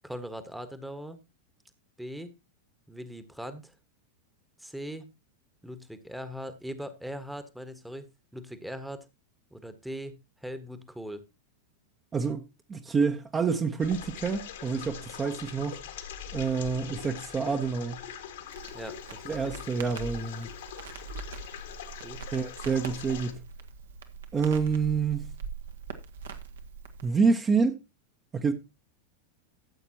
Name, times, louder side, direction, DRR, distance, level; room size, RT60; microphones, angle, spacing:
voice 1, 0.0-1.2 2.0-2.3 2.9-3.7 4.6-5.1 5.6-9.0 9.5-11.2 18.7-19.4 22.0-22.2, equal, ahead, 1.3 m, -40 dB
voice 2, 12.1-12.4 12.7-15.8 16.3-18.0 19.2-20.5 22.3-23.4 24.3-25.3 27.0-27.8 28.3-28.5, right 5 dB, 20° right, 1.0 m, -27 dB
sound 1, 13.8-23.3, left 8 dB, 60° left, 1.9 m, -42 dB
Crackle, 18.5-27.1, right 5 dB, 65° right, 1.3 m, -42 dB
14.0 x 7.9 x 2.9 m
figure-of-eight pair, 90°, 0 cm